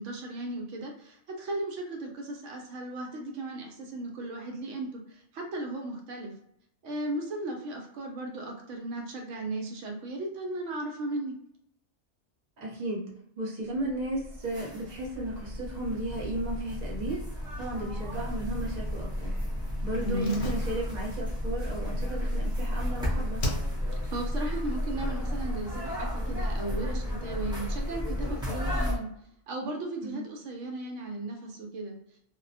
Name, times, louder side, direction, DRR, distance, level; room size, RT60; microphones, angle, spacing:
voice 1, 0.0-6.3 6.8-11.3 20.0-20.4 24.0-29.1 29.5-32.0, right 2 dB, 80° right, 2 dB, 0.9 m, -36 dB
voice 2, 12.6-13.1 13.4-23.4 30.0-30.3, right 1 dB, 40° right, -3 dB, 0.8 m, -35 dB
sound 1, 13.9-29.0, left 1 dB, 5° right, 0.6 m, -32 dB
Slam, 20.2-22.9 23.4-24.1 24.4-24.5, left 1 dB, 80° left, 0.9 m, -38 dB
2.3 x 2.1 x 2.6 m, 0.73 s
omnidirectional pair, 1.3 m